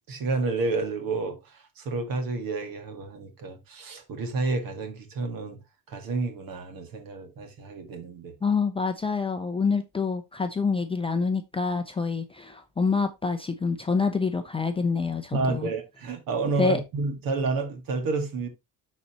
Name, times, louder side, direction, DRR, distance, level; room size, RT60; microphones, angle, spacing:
voice 1, 0.1-5.6 5.9-8.4 15.3-18.5, right 3 dB, 55° right, 2.0 m, -30 dB
voice 2, 8.4-15.7 16.6-16.8, left 5 dB, 15° left, 0.5 m, -27 dB
12.0 x 4.2 x 2.9 m
cardioid pair, 140°, 41 cm